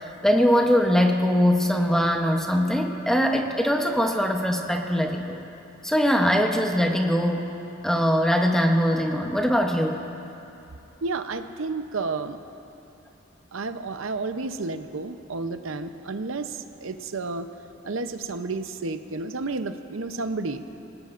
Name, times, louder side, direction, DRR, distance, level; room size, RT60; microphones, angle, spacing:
voice 1, 0.2-5.4 5.8-7.5 7.8-10.0, equal, ahead, 2 dB, 0.8 m, -22 dB
voice 2, 11.0-12.4 13.5-17.5 17.8-20.6, right 3 dB, 85° right, 9 dB, 0.7 m, -31 dB
27.0 x 18.0 x 2.6 m, 2.9 s
head